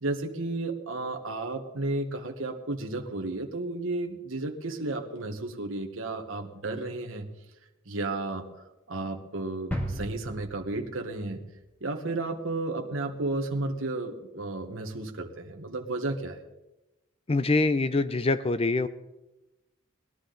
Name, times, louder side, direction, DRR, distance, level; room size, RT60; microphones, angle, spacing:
voice 1, 0.0-7.3 7.9-8.5 8.9-11.4 11.8-16.4, right 2 dB, 70° right, 3 dB, 1.2 m, -33 dB
sound 1, 9.7-11.5 11.8-11.9, equal, 5° left, 1.9 m, -36 dB
voice 2, 17.3-18.9, left 3 dB, 25° left, 12 dB, 0.5 m, -24 dB
20.0 x 12.0 x 3.9 m, 0.96 s
head